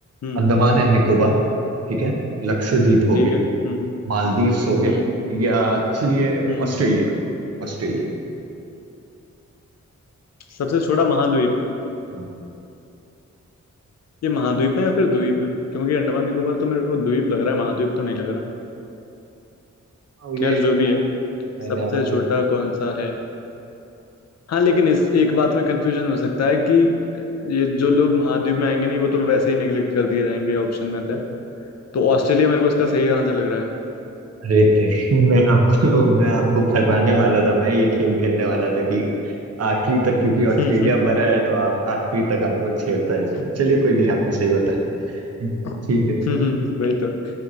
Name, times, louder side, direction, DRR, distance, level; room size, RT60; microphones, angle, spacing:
voice 1, 0.4-1.4 1.9-2.1 2.4-3.3 4.1-5.0 5.3-7.1 7.6-8.0 12.1-12.2 20.2-20.6 21.6-22.2 34.4-39.0 39.6-44.8 45.4-45.5 45.9-46.2, right 2 dB, 55° right, 0 dB, 0.6 m, -19 dB
voice 2, 10.5-11.5 14.2-18.4 20.4-21.0 21.9-23.1 24.5-31.2 31.9-33.7 40.6-41.1 45.6-45.9 46.3-47.1, left 4 dB, 60° left, 3 dB, 0.5 m, -21 dB
4.4 x 2.5 x 3.9 m, 2.8 s
cardioid pair, 65°, 30 cm